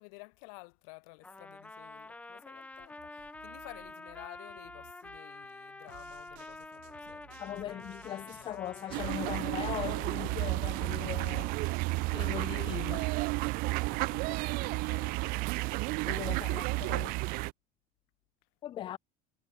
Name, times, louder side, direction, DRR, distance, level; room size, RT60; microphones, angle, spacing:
voice 1, 0.0-7.7 8.4-8.5 12.9-13.1 13.7-15.8 16.2-16.4 16.8-17.1, left 36 dB, 80° left, 3.3 m, -53 dB
Trumpet, 1.2-9.7, left 2 dB, 5° left, 1.8 m, -48 dB
sound 1, 2.7-13.1, right 40 dB or more, 75° right, 2.2 m, -58 dB
voice 2, 7.4-11.6 12.1-13.1 16.0-17.2 18.6-19.0, left 12 dB, 30° left, 0.4 m, -39 dB
sound 2, 8.9-17.5, right 24 dB, 55° right, 0.4 m, -32 dB
cardioid pair, 155°, 18 cm